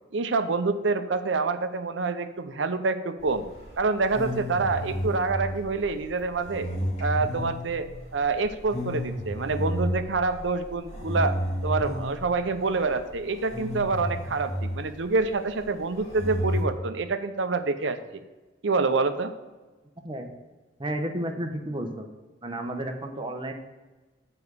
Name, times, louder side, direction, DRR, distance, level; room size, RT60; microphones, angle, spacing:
voice 1, 0.1-3.5 3.8-6.7 7.0-7.9 8.1-11.4 11.6-18.2 18.6-19.3, right 3 dB, 70° right, 9 dB, 0.6 m, -27 dB
sound 1, 3.2-16.6, equal, 35° left, 2.3 m, -32 dB
voice 2, 20.8-22.1 22.4-23.5, right 1 dB, 25° right, 4 dB, 0.8 m, -32 dB
6.9 x 4.9 x 6.7 m, 1.2 s
head